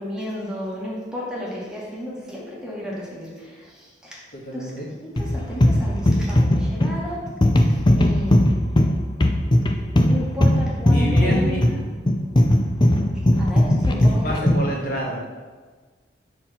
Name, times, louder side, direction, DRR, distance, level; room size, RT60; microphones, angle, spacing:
voice 1, 0.0-4.2 4.5-4.7 5.0-7.2 7.7-8.5 9.9-11.8 13.4-14.5, equal, 5° right, -6 dB, 2.0 m, -33 dB
voice 2, 4.3-4.9 10.9-11.6 14.0-15.2, equal, 55° left, -3 dB, 1.7 m, -27 dB
sound 1, 5.2-14.7, left 1 dB, 25° left, 0.6 m, -18 dB
7.2 x 4.4 x 5.6 m, 1.4 s
head